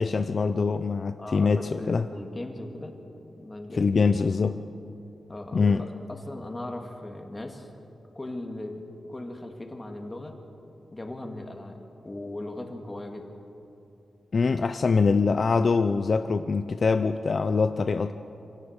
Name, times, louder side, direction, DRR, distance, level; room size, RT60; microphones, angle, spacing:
voice 1, 0.0-2.1 3.8-4.6 5.5-5.8 14.3-18.1, left 4 dB, 50° left, 9 dB, 0.6 m, -24 dB
voice 2, 1.2-3.0 3.3-3.9 5.3-7.7 8.1-8.8 9.1-10.4 10.9-11.8 12.0-13.3, left 1 dB, 20° left, 3 dB, 2.1 m, -38 dB
24.5 x 17.0 x 6.6 m, 2.8 s
wide cardioid pair, 100°, 0 cm